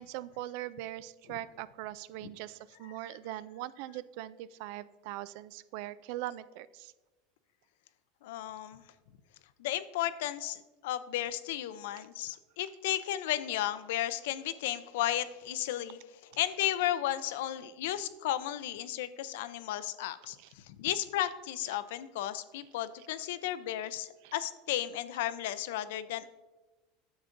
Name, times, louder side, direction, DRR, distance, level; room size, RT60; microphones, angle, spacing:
voice 1, 0.0-6.9 20.4-20.5 24.2-24.3, right 14 dB, 60° right, 17 dB, 0.3 m, -41 dB
voice 2, 8.2-8.8 9.6-16.0 16.4-26.3, left 13 dB, 80° left, 14 dB, 0.5 m, -34 dB
9.9 x 7.1 x 2.6 m, 1.2 s
supercardioid pair, 150°, 0 cm